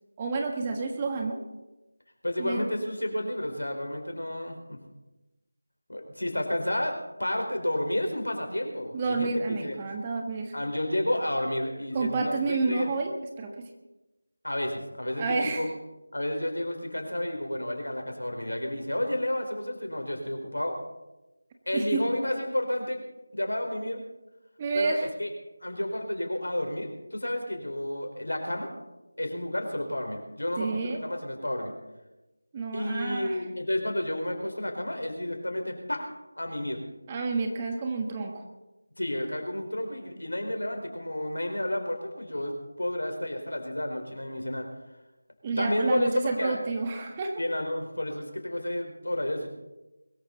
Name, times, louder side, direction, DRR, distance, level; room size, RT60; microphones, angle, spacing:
voice 1, 0.2-1.4 2.4-2.6 8.9-10.5 11.9-13.7 15.2-15.6 21.7-22.0 24.6-25.0 30.6-31.0 32.5-33.4 37.1-38.4 45.4-47.4, right 4 dB, 20° right, 3 dB, 1.4 m, -30 dB
voice 2, 2.2-4.8 5.9-9.8 10.5-12.9 14.4-15.7 16.1-20.8 21.7-23.0 23.3-24.0 24.7-25.3 25.6-28.7 29.2-31.7 32.7-36.1 36.4-36.8 39.0-44.7 45.6-46.6 47.4-49.5, left 1 dB, 75° left, 4 dB, 4.3 m, -31 dB
22.0 x 14.0 x 4.0 m, 1.0 s
figure-of-eight pair, 165°, 0 cm